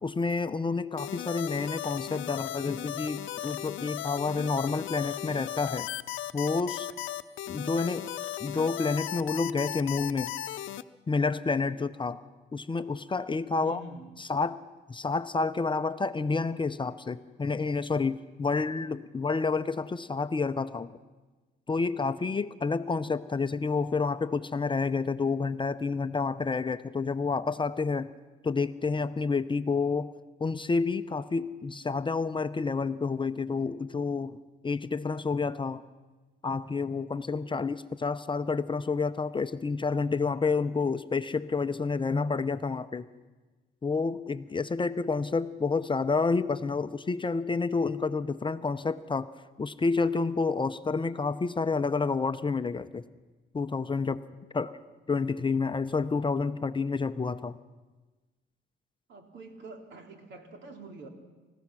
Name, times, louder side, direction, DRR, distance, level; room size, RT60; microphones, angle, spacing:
voice 1, 0.0-5.9 6.3-6.9 7.5-8.0 8.4-10.3 11.1-12.2 12.5-13.8 14.3-14.6 14.9-20.9 21.7-28.1 28.4-30.1 30.4-34.4 34.6-35.8 36.4-43.1 43.8-49.3 49.6-53.0 53.5-54.2 54.5-54.7 55.1-57.6, left 4 dB, 25° left, 11 dB, 0.7 m, -29 dB
sound 1, 1.0-10.8, left 13 dB, 75° left, 0.7 m, -36 dB
voice 2, 13.6-14.1 54.6-54.7 59.1-61.1, right 2 dB, 65° right, 3 dB, 3.3 m, -46 dB
29.0 x 15.5 x 6.2 m, 1.3 s
cardioid pair, 90°, 20 cm